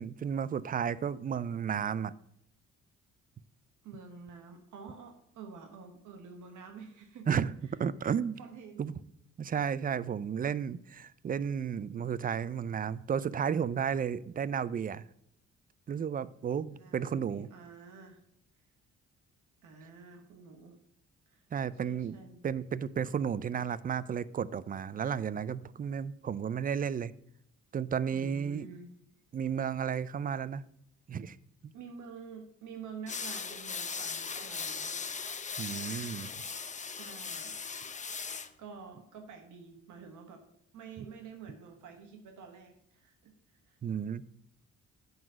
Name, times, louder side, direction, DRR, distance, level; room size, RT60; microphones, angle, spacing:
voice 1, 0.0-2.1 7.3-8.4 8.8-8.9 9.4-15.0 15.9-17.5 21.5-22.1 22.4-27.1 27.7-28.7 29.3-30.6 31.1-31.4 31.6-31.7 35.6-36.3 43.8-44.2, right 7 dB, 30° right, 18 dB, 0.4 m, -33 dB
voice 2, 3.8-7.3 7.7-7.8 8.4-8.9 16.6-18.2 19.6-20.8 21.3-21.4 21.8-22.4 28.1-28.9 31.7-35.0 36.8-37.6 38.6-40.4 40.7-43.3 43.7-43.8, right 5 dB, 75° right, 3 dB, 1.3 m, -48 dB
sound 1, 33.1-38.5, left 5 dB, 25° left, 0.6 m, -38 dB
9.2 x 4.0 x 6.2 m, 0.72 s
cardioid pair, 90°, 30 cm